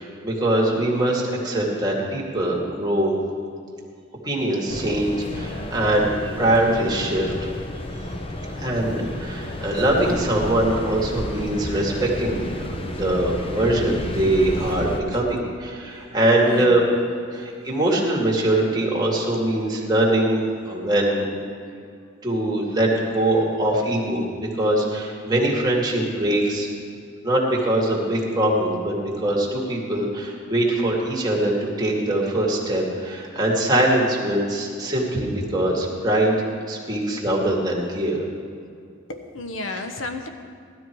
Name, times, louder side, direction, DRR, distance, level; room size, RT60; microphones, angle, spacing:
voice 1, 0.0-3.1 4.2-7.3 8.5-12.6 12.8-16.8 17.3-21.3 22.2-26.7 27.2-36.3 36.7-38.2, right 1 dB, 20° right, -4 dB, 2.4 m, -22 dB
sound 1, 4.7-15.0, left 1 dB, 30° left, 0.8 m, -31 dB
voice 2, 16.4-16.8 17.4-17.5 39.1-40.3, left 2 dB, 80° left, 6 dB, 1.0 m, -33 dB
17.0 x 12.5 x 4.7 m, 2.3 s
head